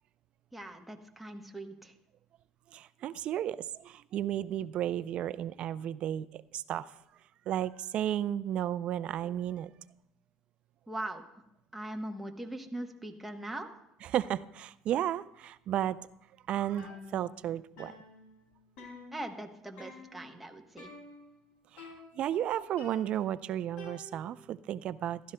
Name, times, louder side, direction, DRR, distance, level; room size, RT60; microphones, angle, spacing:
voice 1, 0.5-1.9 10.9-11.2 11.7-13.7 19.1-20.9, right 1 dB, 5° right, 3 dB, 0.9 m, -41 dB
voice 2, 2.7-6.9 7.5-9.7 14.0-16.0 16.5-17.9 21.7-25.2, right 11 dB, 50° right, 15 dB, 0.4 m, -33 dB
sound 1, 16.8-17.5 17.8-19.5 19.8-20.3 20.8-21.4 21.8-22.4 22.8-24.5, left 3 dB, 75° left, 2.6 m, -50 dB
15.5 x 12.0 x 2.2 m, 0.82 s
cardioid pair, 120°, 2 cm